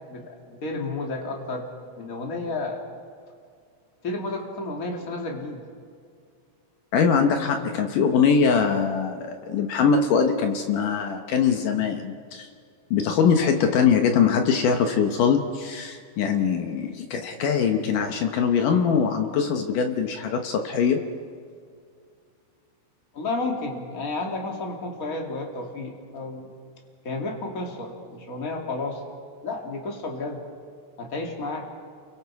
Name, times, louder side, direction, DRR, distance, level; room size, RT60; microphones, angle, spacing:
voice 1, 0.1-1.7 2.0-2.8 4.0-5.6 7.4-7.5 23.1-26.5 27.0-29.0 29.4-30.4 31.0-31.7, left 2 dB, 30° left, 1 dB, 1.8 m, -31 dB
voice 2, 6.9-12.5 12.9-21.1, left 6 dB, 70° left, 5 dB, 2.0 m, -22 dB
29.5 x 23.0 x 4.8 m, 2.2 s
omnidirectional pair, 5.1 m